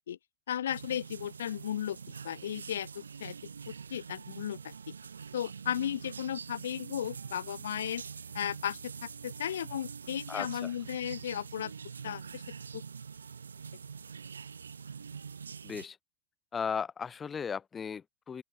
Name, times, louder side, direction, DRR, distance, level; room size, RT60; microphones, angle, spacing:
voice 1, 0.5-2.0 2.2-3.3 3.7-4.9 5.3-8.0 8.3-11.7 12.0-12.4 12.7-12.8, left 10 dB, 65° left, 1.6 m, -35 dB
sound 1, 0.7-15.9, right 6 dB, 70° right, 2.8 m, -45 dB
voice 2, 10.3-10.7 15.6-16.0 16.5-18.4, left 6 dB, 20° left, 5.6 m, -36 dB
open air
figure-of-eight pair, 90°, 0 cm